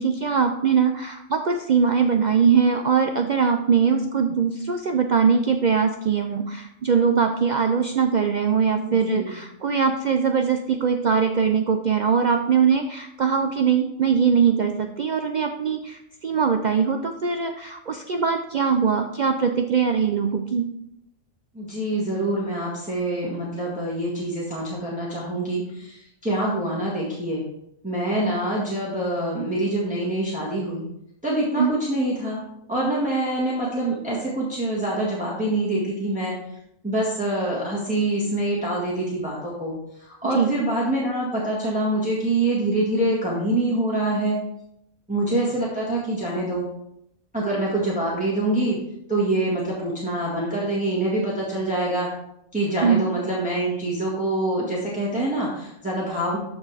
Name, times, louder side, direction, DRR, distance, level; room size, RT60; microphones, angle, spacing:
voice 1, 0.0-20.7 31.6-31.7 40.3-40.5 52.8-53.1, right 6 dB, 65° right, 5 dB, 0.4 m, -21 dB
voice 2, 8.8-9.3 21.5-27.4 27.8-30.8 31.2-32.4 32.7-36.3 36.8-44.4 45.1-46.7 47.3-48.8 49.1-52.1 52.5-56.4, right 1 dB, 5° right, -6 dB, 1.7 m, -25 dB
13.0 x 4.4 x 3.4 m, 0.79 s
omnidirectional pair, 1.3 m